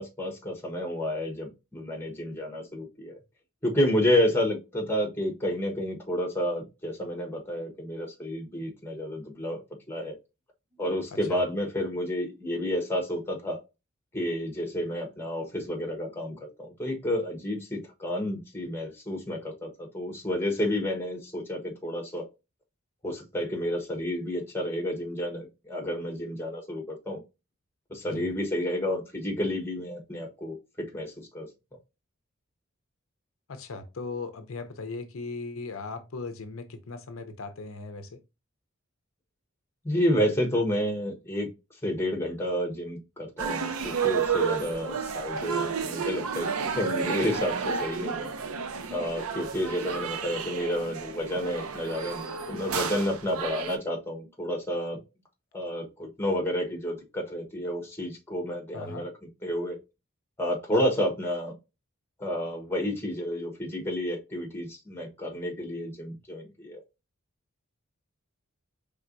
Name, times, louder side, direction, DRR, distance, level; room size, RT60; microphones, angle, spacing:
voice 1, 0.0-3.1 3.6-9.6 9.9-10.2 10.8-13.6 14.1-19.7 19.9-22.2 23.0-27.2 27.9-30.5 30.9-31.5 39.8-41.5 41.8-46.5 46.7-48.3 48.9-55.0 55.5-59.1 59.4-59.8 60.4-61.5 62.2-66.8, equal, 10° left, 1.1 m, -30 dB
voice 2, 33.5-38.2 58.7-59.1, left 3 dB, 75° left, 0.6 m, -38 dB
sound 1, 43.4-53.8, right 6 dB, 90° right, 0.7 m, -31 dB
4.5 x 3.5 x 2.5 m
head